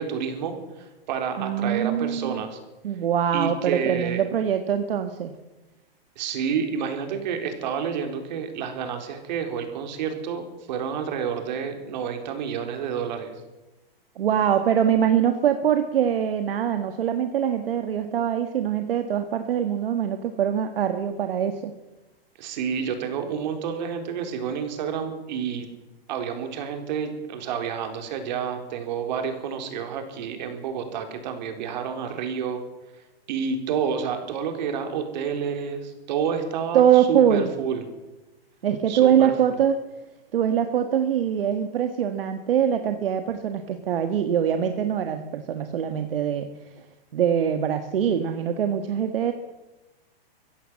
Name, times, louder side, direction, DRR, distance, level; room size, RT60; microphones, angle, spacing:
voice 1, 0.0-2.6 3.3-4.2 6.2-13.3 22.4-25.7 26.1-32.6 33.3-37.8 38.9-39.3, right 7 dB, 50° right, 6 dB, 4.2 m, -29 dB
voice 2, 1.4-2.4 2.8-5.3 14.2-21.7 36.7-37.5 38.6-39.8 40.3-46.5 47.1-49.3, right 9 dB, 70° right, 8 dB, 1.7 m, -23 dB
23.5 x 15.5 x 7.6 m, 1.1 s
hypercardioid pair, 155°, 30 cm